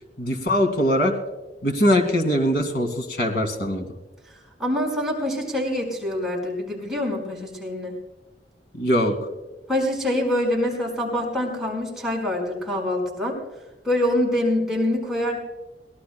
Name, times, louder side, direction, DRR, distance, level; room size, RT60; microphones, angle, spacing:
voice 1, 0.2-1.2 1.6-3.9 8.8-9.1, equal, 60° left, 5 dB, 2.2 m, -21 dB
voice 2, 4.6-7.9 9.7-13.4 13.8-15.4, left 1 dB, 5° right, -3 dB, 4.7 m, -25 dB
22.5 x 17.5 x 2.2 m, 1.1 s
head